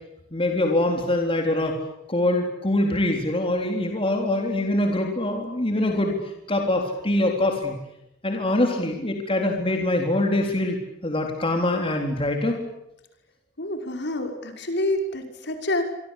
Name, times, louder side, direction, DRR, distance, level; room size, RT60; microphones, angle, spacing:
voice 1, 0.3-1.8 2.1-6.1 6.5-7.8 8.2-12.6, left 1 dB, 30° left, 2 dB, 3.9 m, -24 dB
voice 2, 13.6-15.8, left 1 dB, 60° left, 5 dB, 5.7 m, -27 dB
26.5 x 25.5 x 8.5 m, 0.88 s
head